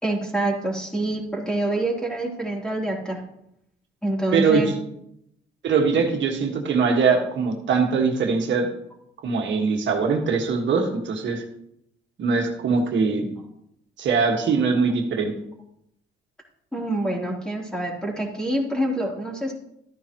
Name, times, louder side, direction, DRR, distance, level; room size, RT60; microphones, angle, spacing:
voice 1, 0.0-3.2 4.0-4.7 16.7-19.5, right 1 dB, 5° left, -2 dB, 3.4 m, -26 dB
voice 2, 4.3-4.7 5.6-8.7 9.2-11.4 12.2-13.2 14.0-15.3, right 5 dB, 70° right, 1 dB, 1.8 m, -22 dB
13.0 x 9.8 x 3.1 m, 0.76 s
cardioid pair, 90°, 20 cm